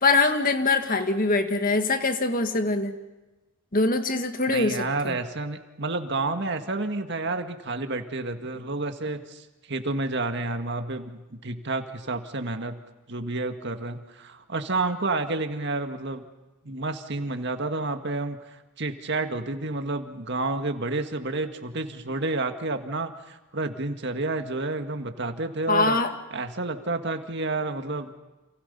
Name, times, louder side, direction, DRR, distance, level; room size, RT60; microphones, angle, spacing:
voice 1, 0.0-2.9 3.7-4.8 5.0-5.1 25.7-26.1, left 3 dB, 40° left, 7 dB, 1.9 m, -23 dB
voice 2, 4.5-12.8 13.1-16.3 16.6-26.0 26.3-28.1, right 2 dB, 55° right, 7 dB, 1.9 m, -30 dB
29.0 x 28.0 x 5.6 m, 1.1 s
head